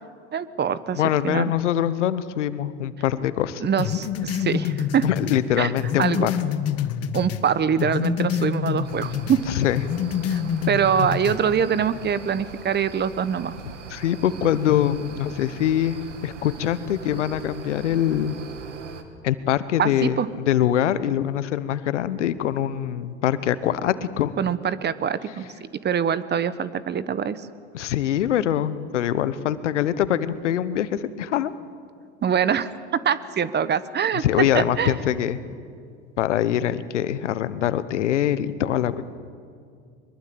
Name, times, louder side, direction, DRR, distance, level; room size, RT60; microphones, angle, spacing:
voice 1, 0.3-1.5 3.6-5.1 5.6-5.7 6.0-6.3 7.1-9.4 10.3-13.5 19.8-20.3 24.4-25.5 25.8-27.5 32.2-32.7 33.0-34.9, right 7 dB, 30° right, 15 dB, 1.2 m, -24 dB
voice 2, 0.9-3.7 5.0-6.3 9.5-9.8 13.9-18.3 19.2-24.3 27.7-31.5 34.2-35.4 36.2-39.0, left 11 dB, 85° left, 15 dB, 1.2 m, -23 dB
sound 1, 3.8-7.5 7.8-9.4 9.7-11.4, left 9 dB, 45° left, 1.6 m, -27 dB
sound 2, 8.8-19.0, right 5 dB, 90° right, 2.0 m, -40 dB
23.0 x 21.5 x 8.7 m, 2.3 s
hypercardioid pair, 90°, 35 cm